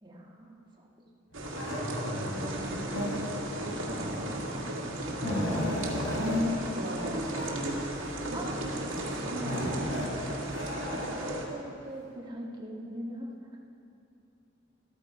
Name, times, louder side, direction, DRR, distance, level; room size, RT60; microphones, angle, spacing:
voice 1, 0.0-0.9 2.1-3.1 8.3-9.7 10.6-13.6, right 1 dB, 25° right, -3 dB, 1.5 m, -42 dB
sound 1, 1.3-11.4, right 1 dB, 85° right, 1.9 m, -35 dB
sound 2, 1.5-1.8 2.9-3.4 4.4-4.5 4.9-6.4 6.9-7.1 7.3-7.5 8.2-8.6 9.4-11.3, left 1 dB, 75° left, 3.6 m, -34 dB
voice 2, 3.6-4.8 6.0-7.9 8.3-9.4, left 1 dB, 60° right, 0 dB, 1.4 m, -36 dB
13.5 x 13.5 x 4.8 m, 2.7 s
head